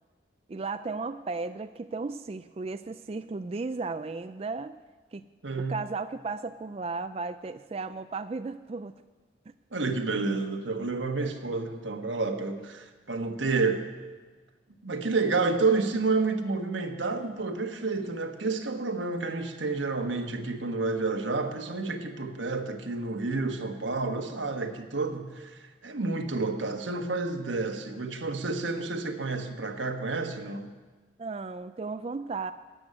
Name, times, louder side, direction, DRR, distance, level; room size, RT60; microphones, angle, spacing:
voice 1, 0.5-4.8 5.1-5.2 5.7-8.9 31.2-32.5, right 3 dB, 30° right, 10 dB, 0.3 m, -35 dB
voice 2, 5.4-5.8 9.7-13.9 14.8-30.7, right 3 dB, 90° right, 5 dB, 1.3 m, -30 dB
13.5 x 8.0 x 9.9 m, 1.3 s
head